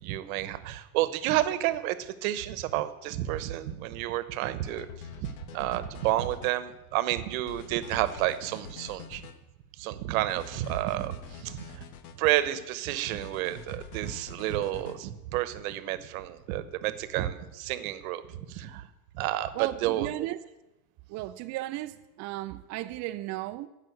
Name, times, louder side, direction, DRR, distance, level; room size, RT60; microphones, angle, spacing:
voice 1, 0.0-4.9 5.5-9.3 9.8-11.8 12.2-18.2 18.5-18.9 19.1-20.1, right 14 dB, 70° right, 1.1 m, -30 dB
sound 1, 4.7-6.5 7.5-9.4 10.3-12.2 13.1-15.0, left 7 dB, 75° left, 1.3 m, -46 dB
voice 2, 19.5-20.4 21.1-23.7, right 16 dB, 40° right, 0.5 m, -35 dB
14.5 x 5.8 x 8.0 m
supercardioid pair, 110°, 44 cm